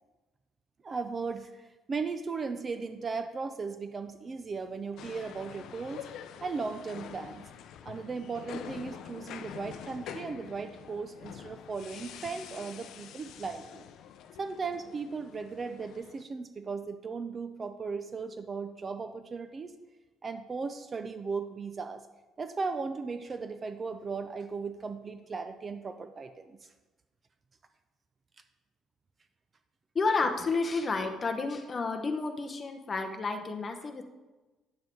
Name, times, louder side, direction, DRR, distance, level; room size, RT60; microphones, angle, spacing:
voice 1, 0.8-6.1 6.4-7.5 7.8-13.8 14.4-19.7 20.2-22.1 22.4-26.7, right 4 dB, 25° right, 9 dB, 0.4 m, -37 dB
sound 1, 5.0-16.2, left 9 dB, 60° left, 0.5 m, -46 dB
voice 2, 29.9-34.0, left 4 dB, 25° left, 5 dB, 0.8 m, -30 dB
9.4 x 7.4 x 4.5 m, 1.2 s
cardioid pair, 160°, 0 cm